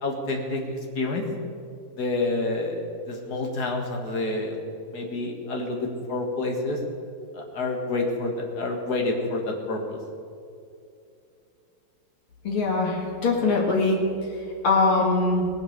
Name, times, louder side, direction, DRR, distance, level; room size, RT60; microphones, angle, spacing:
voice 1, 0.0-1.2 1.9-4.7 4.9-6.8 7.3-10.0, left 2 dB, 50° left, 1 dB, 2.2 m, -28 dB
voice 2, 12.4-14.0 14.6-15.4, left 3 dB, 80° left, -2 dB, 2.8 m, -22 dB
19.0 x 7.7 x 6.7 m, 2.5 s
omnidirectional pair, 2.3 m